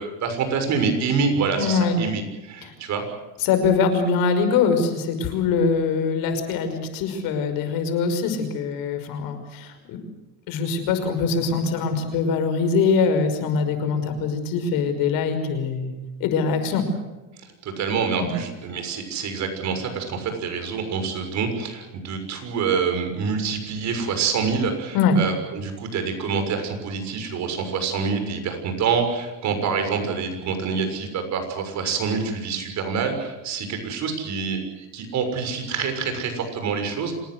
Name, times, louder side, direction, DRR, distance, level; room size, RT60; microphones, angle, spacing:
voice 1, 0.0-3.0 17.6-37.1, right 5 dB, 50° right, 6 dB, 6.6 m, -26 dB
voice 2, 1.6-2.0 2.6-2.7 3.4-10.0 10.5-15.9 16.2-16.9 18.2-18.3 24.9-25.2, left 5 dB, 70° left, 8 dB, 5.7 m, -23 dB
26.5 x 19.5 x 8.0 m, 1.1 s
cardioid pair, 125°, 36 cm